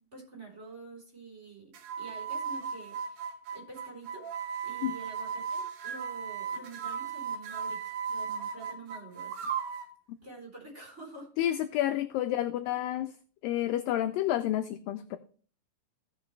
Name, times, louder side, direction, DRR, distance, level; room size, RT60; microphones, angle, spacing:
voice 1, 0.0-3.2 3.5-4.3 4.6-7.8 8.1-9.5 10.2-11.3, right 3 dB, 20° right, -2 dB, 3.7 m, -47 dB
sound 1, 1.7-9.9, right 6 dB, 70° right, 2.9 m, -36 dB
voice 2, 11.4-13.1 13.4-15.2, left 12 dB, 85° left, 9 dB, 2.0 m, -30 dB
16.5 x 6.0 x 3.2 m, 0.42 s
omnidirectional pair, 4.5 m